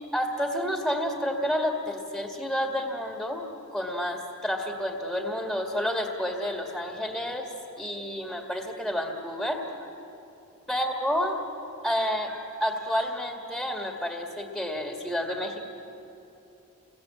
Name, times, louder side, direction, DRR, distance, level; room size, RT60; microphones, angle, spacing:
voice 1, 0.1-9.9 10.7-11.4 11.8-15.7, equal, ahead, 2 dB, 2.0 m, -30 dB
29.0 x 21.0 x 8.5 m, 2.9 s
head